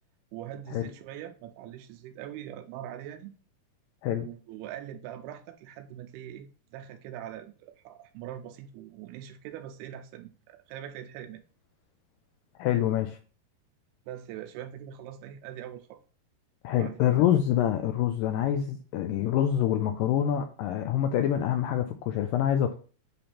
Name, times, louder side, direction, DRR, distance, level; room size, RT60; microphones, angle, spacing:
voice 1, 0.3-3.3 4.1-11.4 14.1-16.0 16.8-17.4, right 11 dB, 90° right, 2.6 m, -42 dB
voice 2, 12.6-13.2 16.6-22.7, left 10 dB, 85° left, 1.9 m, -26 dB
8.4 x 2.9 x 5.6 m
omnidirectional pair, 4.5 m